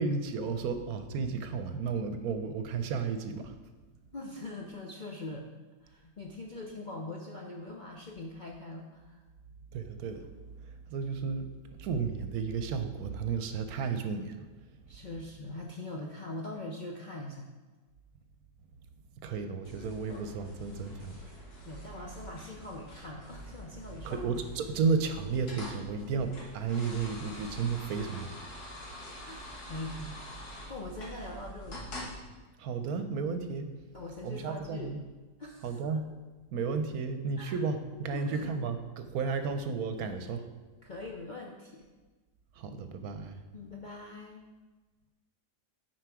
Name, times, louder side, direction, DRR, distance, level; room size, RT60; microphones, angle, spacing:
voice 1, 0.0-3.5 9.7-10.2 10.9-11.5 11.8-14.5 19.2-21.2 24.0-28.3 32.6-33.7 34.2-35.0 35.6-36.1 36.5-40.5 42.6-43.4, right 5 dB, 70° right, 8 dB, 1.1 m, -33 dB
voice 2, 4.1-5.5 5.8-9.2 14.9-17.5 21.6-24.3 28.0-28.1 29.2-30.2 30.7-31.8 33.9-34.9 35.4-35.8 37.4-37.7 38.1-38.5 40.8-41.9 43.5-44.5, left 2 dB, 50° left, -1 dB, 0.5 m, -42 dB
sound 1, 19.6-32.2, equal, 75° left, 2.0 m, -45 dB
9.2 x 4.8 x 4.7 m, 1.3 s
omnidirectional pair, 1.7 m